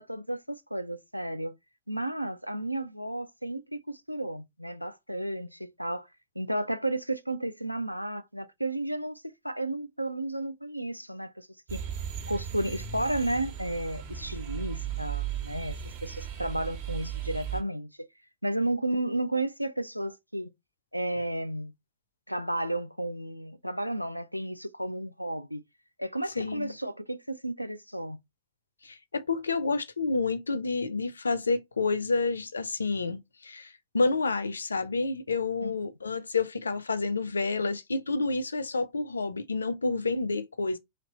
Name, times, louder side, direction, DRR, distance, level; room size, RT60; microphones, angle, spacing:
voice 1, 0.0-1.5 1.9-6.1 6.4-11.8 12.3-17.9 18.4-20.5 20.9-21.7 22.3-25.6 26.0-28.2 35.6-35.7, right 1 dB, 90° right, 0.4 m, -33 dB
sound 1, 11.7-17.6, right 9 dB, 50° right, 1.1 m, -36 dB
voice 2, 26.4-26.7 28.8-40.8, left 3 dB, 75° left, 0.4 m, -29 dB
3.2 x 2.8 x 3.9 m
figure-of-eight pair, 90°, 0 cm